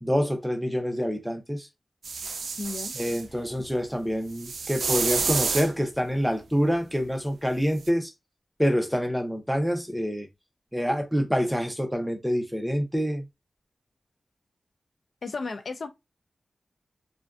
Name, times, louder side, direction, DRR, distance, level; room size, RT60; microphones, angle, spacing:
voice 1, 0.0-1.7 3.0-8.1 8.6-10.3 10.7-13.2, equal, ahead, 0.5 m, -26 dB
sound 1, 2.0-3.2 4.4-5.7 7.8-7.9, right 4 dB, 85° right, 0.3 m, -29 dB
voice 2, 2.6-2.9 15.2-15.9, left 3 dB, 60° left, 0.3 m, -33 dB
2.4 x 2.2 x 2.3 m
wide cardioid pair, 95°, 0 cm